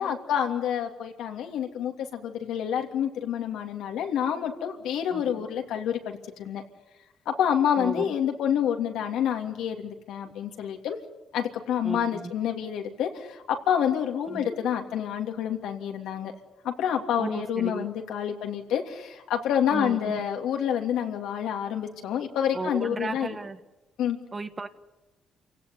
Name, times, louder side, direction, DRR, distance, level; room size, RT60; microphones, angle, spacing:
voice 1, 0.0-6.6 7.2-11.0 11.3-16.3 16.6-23.4 24.0-24.2, left 9 dB, 85° left, 3 dB, 3.0 m, -28 dB
voice 2, 11.8-12.3 14.3-14.5 17.2-17.9 19.7-20.2 22.5-23.6 24.3-24.7, right 3 dB, 30° right, 9 dB, 1.6 m, -34 dB
28.5 x 17.5 x 9.6 m, 1.0 s
cardioid pair, 90°, 0 cm